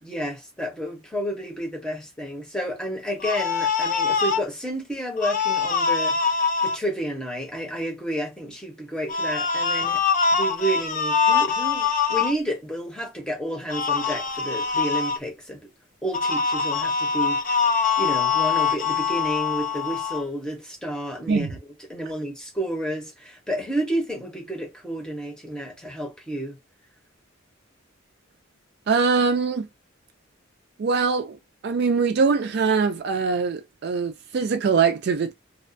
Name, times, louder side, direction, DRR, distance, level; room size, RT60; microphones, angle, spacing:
voice 1, 0.0-6.3 6.6-10.0 10.3-15.7 16.0-21.6 21.9-26.6, equal, 5° left, 0.7 m, -31 dB
sound 1, 3.2-4.4 5.2-6.8 9.1-12.3 13.7-15.2 16.1-20.2, left 5 dB, 40° left, 0.4 m, -23 dB
voice 2, 28.9-29.7 30.8-31.4 31.6-35.3, right 5 dB, 50° right, 0.3 m, -22 dB
2.4 x 2.2 x 2.5 m
head